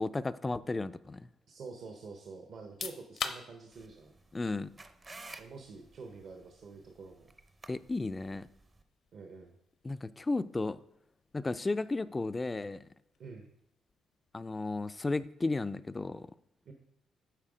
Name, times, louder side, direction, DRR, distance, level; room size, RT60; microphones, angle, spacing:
voice 1, 0.0-1.3 4.3-4.7 7.7-8.5 9.8-10.8 11.3-12.9 14.3-16.3, left 3 dB, 20° left, 14 dB, 0.3 m, -34 dB
voice 2, 1.5-4.2 5.4-7.3 9.1-9.5 13.2-13.5 16.7-16.8, right 4 dB, 60° right, 4 dB, 0.8 m, -47 dB
sound 1, 2.6-15.2, left 6 dB, 65° left, 0.7 m, -49 dB
sound 2, 3.7-8.8, right 3 dB, 25° right, 0.5 m, -53 dB
7.5 x 4.2 x 5.0 m, 0.79 s
cardioid pair, 90°, 0 cm